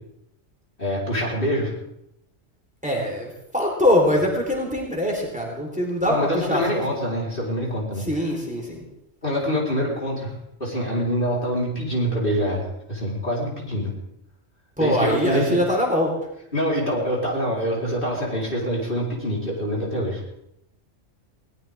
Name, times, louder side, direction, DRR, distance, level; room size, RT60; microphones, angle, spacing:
voice 1, 0.8-1.7 6.0-8.0 9.2-10.3 10.6-13.9 14.8-15.6 16.5-20.2, equal, 45° left, -4 dB, 4.6 m, -25 dB
voice 2, 2.8-6.8 8.1-8.8 14.8-16.1, left 1 dB, 5° right, -1 dB, 4.2 m, -23 dB
21.5 x 18.5 x 3.7 m, 0.80 s
omnidirectional pair, 1.3 m